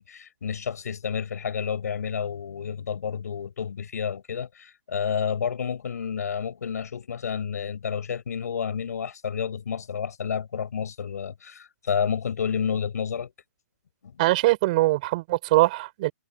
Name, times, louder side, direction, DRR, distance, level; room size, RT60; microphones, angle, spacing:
voice 1, 0.0-13.3 14.0-14.2, left 7 dB, 70° left, 6.2 m, -30 dB
voice 2, 14.2-16.1, right 19 dB, 30° right, 6.4 m, -22 dB
hypercardioid pair, 175°, 9 cm